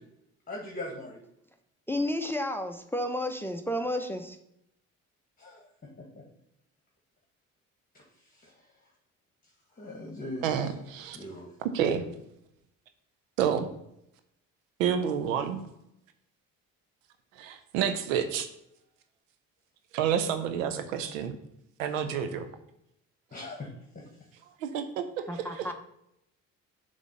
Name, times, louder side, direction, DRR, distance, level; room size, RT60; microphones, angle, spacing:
voice 1, 0.5-1.2 5.4-5.6 9.8-10.5 11.1-11.5 23.3-23.7 24.0-24.1, left 1 dB, 20° left, -1 dB, 1.7 m, -39 dB
voice 2, 1.9-4.4 25.3-25.7, left 1 dB, 5° left, 6 dB, 0.8 m, -31 dB
voice 3, 10.4-11.2 11.6-12.0 13.4-13.7 14.8-15.6 17.4-18.5 19.9-21.4 21.8-22.5 24.6-25.7, right 8 dB, 85° right, 9 dB, 0.7 m, -29 dB
7.1 x 3.4 x 5.5 m, 0.78 s
hypercardioid pair, 50°, 39 cm